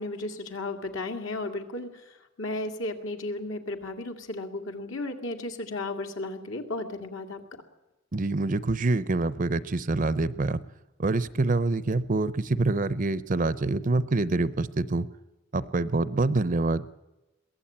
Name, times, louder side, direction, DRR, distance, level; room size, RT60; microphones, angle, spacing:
voice 1, 0.0-1.9 2.4-7.4, left 2 dB, 70° left, 4 dB, 2.4 m, -34 dB
voice 2, 8.1-10.6 11.0-15.1 15.5-16.9, right 2 dB, 40° right, 17 dB, 0.6 m, -26 dB
22.5 x 16.0 x 8.8 m, 1.0 s
head